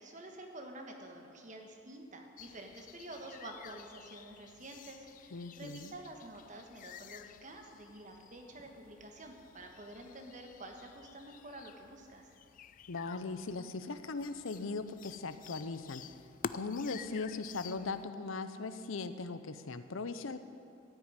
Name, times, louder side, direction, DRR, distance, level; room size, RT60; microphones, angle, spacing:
voice 1, 0.0-12.3, right 1 dB, 40° right, 3 dB, 1.4 m, -49 dB
sound 1, 2.4-18.0, left 7 dB, 40° left, 0.3 m, -51 dB
voice 2, 5.3-5.9 12.9-16.0 16.5-20.4, left 3 dB, 85° left, 11 dB, 0.7 m, -39 dB
14.0 x 6.2 x 9.7 m, 2.5 s
head